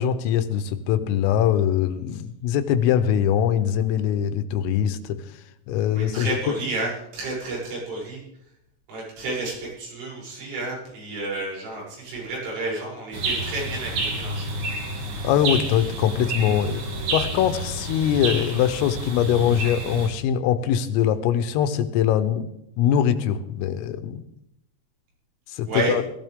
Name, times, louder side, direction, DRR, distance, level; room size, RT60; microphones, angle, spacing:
voice 1, 0.0-5.2 5.7-6.4 15.2-16.8 17.1-22.5 22.8-24.2 25.5-26.0, left 9 dB, 85° left, 10 dB, 3.5 m, -22 dB
voice 2, 5.9-8.2 8.9-14.6 25.6-25.9, right 2 dB, 75° right, -5 dB, 9.9 m, -31 dB
sound 1, 13.1-20.1, right 2 dB, 55° right, 4.4 m, -29 dB
18.0 x 15.5 x 3.6 m, 0.79 s
omnidirectional pair, 5.9 m